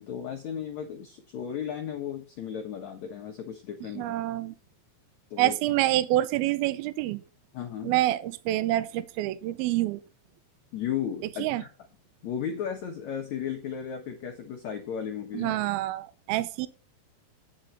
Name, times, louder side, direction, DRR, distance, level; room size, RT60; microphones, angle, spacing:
voice 1, 0.0-4.2 5.3-5.6 7.5-8.0 10.7-11.7 12.2-15.6, left 8 dB, 85° left, 1.6 m, -35 dB
voice 2, 4.0-4.6 5.4-7.2 7.8-10.0 11.4-11.6 15.3-16.7, right 15 dB, 90° right, 2.2 m, -27 dB
9.1 x 6.3 x 4.3 m
omnidirectional pair, 5.0 m